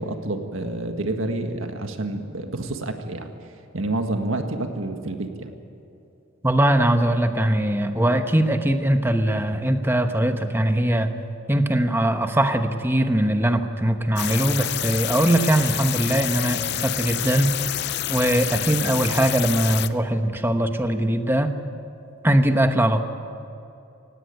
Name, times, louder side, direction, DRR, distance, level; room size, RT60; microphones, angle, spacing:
voice 1, 0.0-3.3 3.7-5.5, right 2 dB, 75° right, 5 dB, 1.7 m, -28 dB
voice 2, 6.4-11.1 11.5-17.5 18.1-21.5 22.2-23.0, right 1 dB, 10° right, 7 dB, 1.1 m, -21 dB
sound 1, 14.2-19.9, left 11 dB, 50° left, 0.6 m, -28 dB
18.0 x 17.0 x 9.4 m, 2.7 s
head